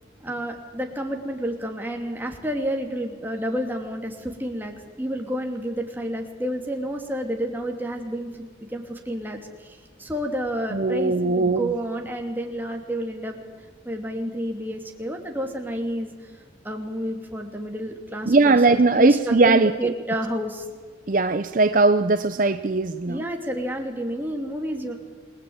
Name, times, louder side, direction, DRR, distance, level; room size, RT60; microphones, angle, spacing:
voice 1, 0.2-13.4 13.8-16.3 16.6-20.7 23.1-25.0, equal, 10° right, 2 dB, 2.8 m, -30 dB
voice 2, 10.7-11.7 18.3-19.9 21.1-23.2, right 3 dB, 45° right, 10 dB, 0.7 m, -19 dB
28.5 x 20.0 x 8.8 m, 1.5 s
head